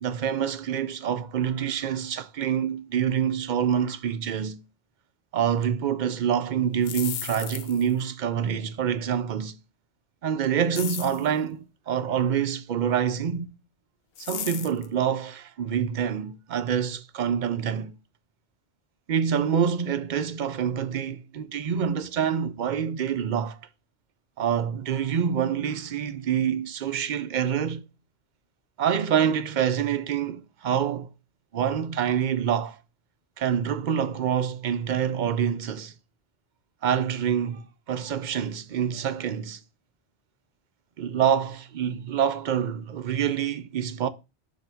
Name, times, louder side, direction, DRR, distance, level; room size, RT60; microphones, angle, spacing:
voice 1, 0.0-4.6 5.3-9.6 10.2-13.5 14.2-17.9 19.1-23.6 24.4-27.8 28.8-31.1 31.5-32.8 33.4-35.9 36.8-39.6 41.0-44.1, right 8 dB, 60° right, 0.5 m, -26 dB
sound 1, 6.7-7.9 10.7-11.3 14.2-14.9, left 10 dB, 65° left, 0.7 m, -35 dB
6.7 x 2.8 x 5.6 m
omnidirectional pair, 1.1 m